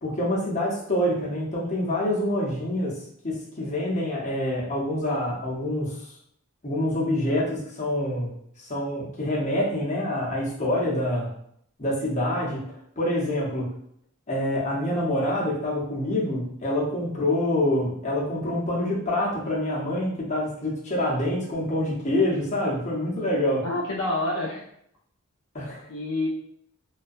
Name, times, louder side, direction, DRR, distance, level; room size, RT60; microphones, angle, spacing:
voice 1, 0.0-6.0 6.6-8.3 8.6-11.3 11.8-12.6 13.0-13.7 14.3-23.6 25.5-25.8, left 1 dB, 35° left, -5 dB, 0.7 m, -26 dB
voice 2, 23.6-24.6 25.9-26.3, left 2 dB, 80° left, -1 dB, 0.4 m, -27 dB
2.3 x 2.2 x 2.5 m, 0.70 s
head